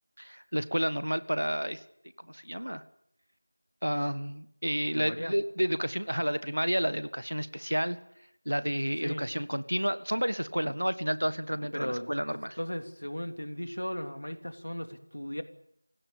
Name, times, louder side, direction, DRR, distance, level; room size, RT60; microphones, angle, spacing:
voice 1, 0.2-1.8 2.2-2.8 3.8-8.0 8.4-12.6, equal, 65° right, 14 dB, 1.6 m, -30 dB
voice 2, 4.9-5.3 9.0-9.3 11.6-12.1 12.6-15.4, equal, 60° left, 8 dB, 2.8 m, -36 dB
27.5 x 16.5 x 8.8 m, 0.76 s
figure-of-eight pair, 180°, 0 cm